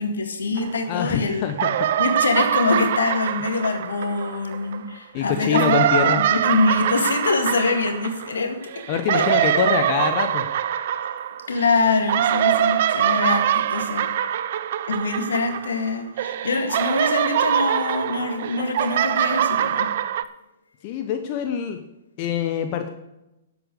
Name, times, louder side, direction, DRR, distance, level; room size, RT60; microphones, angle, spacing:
voice 1, 0.0-1.5 2.0-8.9 9.1-9.3 11.5-14.1 14.8-19.9, left 3 dB, 75° left, 7 dB, 1.9 m, -24 dB
sound 1, 0.6-1.2 1.5-4.8 5.3-15.9 16.2-20.2, right 11 dB, 55° right, 0.6 m, -23 dB
voice 2, 0.9-1.7 5.1-6.2 8.9-10.4 20.8-21.8 22.2-22.9, left 8 dB, 40° left, 7 dB, 1.0 m, -24 dB
11.5 x 8.3 x 6.7 m, 0.91 s
figure-of-eight pair, 115°, 0 cm